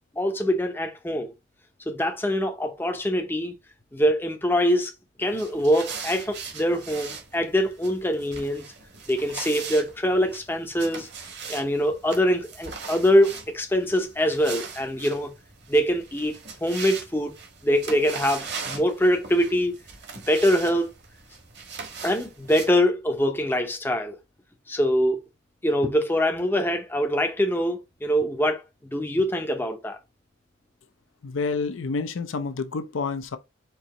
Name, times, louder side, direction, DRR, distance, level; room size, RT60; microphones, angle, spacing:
voice 1, 0.1-1.3 1.9-3.5 3.9-4.9 5.2-8.6 9.1-11.1 11.5-15.3 15.7-16.3 16.6-17.4 17.6-19.7 20.1-20.9 22.0-24.2 24.7-25.2 25.6-30.0, equal, 10° left, 0.6 m, -24 dB
sound 1, 5.2-22.7, right 5 dB, 55° right, 1.3 m, -40 dB
voice 2, 31.2-33.4, left 4 dB, 65° left, 0.5 m, -29 dB
4.6 x 2.7 x 3.8 m
head